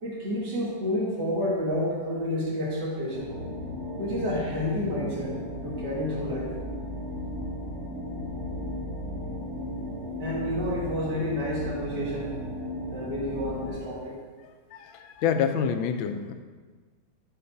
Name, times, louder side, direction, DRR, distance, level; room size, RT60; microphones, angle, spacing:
voice 1, 0.0-3.3 4.0-5.3 5.6-6.5 10.2-12.3 12.9-14.2, left 1 dB, 60° right, -7 dB, 2.6 m, -30 dB
sound 1, 3.1-13.8, left 1 dB, 45° right, 1.0 m, -35 dB
voice 2, 14.7-16.3, left 7 dB, 85° left, 7 dB, 1.4 m, -27 dB
11.5 x 6.7 x 2.7 m, 1.4 s
omnidirectional pair, 2.1 m